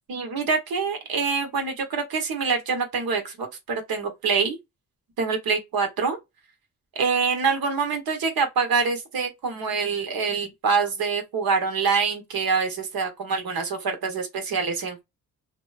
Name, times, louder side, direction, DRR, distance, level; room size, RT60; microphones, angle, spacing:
voice 1, 0.1-4.6 5.2-6.2 6.9-15.0, right 5 dB, 75° right, 1.1 m, -25 dB
3.0 x 2.2 x 2.3 m
cardioid pair, 95°, 36 cm